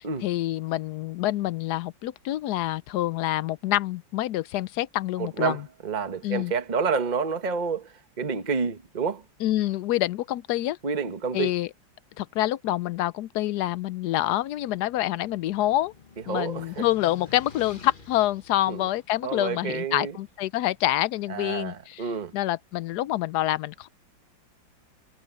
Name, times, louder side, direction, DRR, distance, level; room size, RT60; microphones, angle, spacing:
voice 1, 0.0-5.6 6.2-6.5 9.4-10.8 11.3-11.7 12.2-15.9 16.3-22.0 22.3-23.9, left 14 dB, 75° left, 0.9 m, -27 dB
voice 2, 5.2-9.2 10.8-11.5 16.3-16.9 18.7-18.8 19.2-20.2 21.3-22.3, right 5 dB, 25° right, 1.3 m, -29 dB
sound 1, 14.5-20.5, left 5 dB, 30° left, 1.3 m, -50 dB
omnidirectional pair, 2.2 m